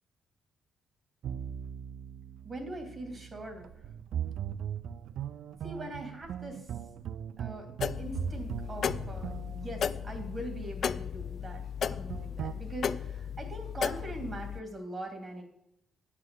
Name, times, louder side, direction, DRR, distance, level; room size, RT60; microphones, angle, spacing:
sound 1, 1.2-10.6 12.1-12.5, right 9 dB, 70° right, 0.4 m, -39 dB
voice 1, 2.4-3.7 5.6-6.7 7.4-7.7 7.9-11.6 11.9-15.4, right 1 dB, 35° right, 4 dB, 2.7 m, -42 dB
sound 2, 7.8-14.6, left 7 dB, 55° left, 0.4 m, -35 dB
9.5 x 5.9 x 7.6 m, 0.82 s
cardioid pair, 90°, 0 cm